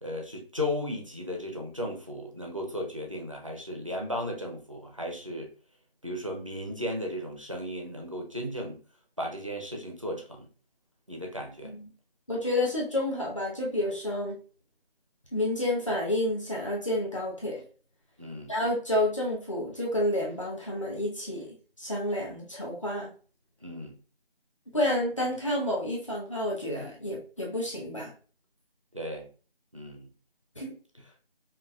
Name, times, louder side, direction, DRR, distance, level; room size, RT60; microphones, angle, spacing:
voice 1, 0.0-5.5 6.0-8.8 9.2-10.5 11.1-11.7 18.2-18.5 23.6-24.0 28.9-29.3 29.7-30.1, left 1 dB, 35° right, 0.6 m, -35 dB
voice 2, 12.3-14.4 15.3-17.6 18.5-23.1 24.7-28.1 30.6-30.8, left 1 dB, 30° left, 0.9 m, -30 dB
5.3 x 2.3 x 2.3 m
figure-of-eight pair, 175°, 30 cm